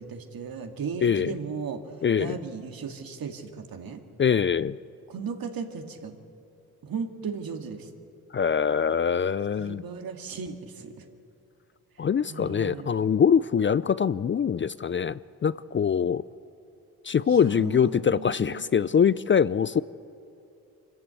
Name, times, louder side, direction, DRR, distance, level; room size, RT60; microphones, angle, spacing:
voice 1, 0.0-1.8 2.2-4.0 5.1-6.2 6.8-7.9 9.6-11.1 12.3-12.9 17.3-18.7, right 5 dB, 65° right, 5 dB, 2.2 m, -36 dB
voice 2, 1.0-1.3 2.0-2.4 4.2-4.8 8.3-9.8 12.0-16.2 17.0-19.8, left 7 dB, 30° left, 17 dB, 0.4 m, -23 dB
25.0 x 14.5 x 8.3 m, 2.7 s
supercardioid pair, 55°, 38 cm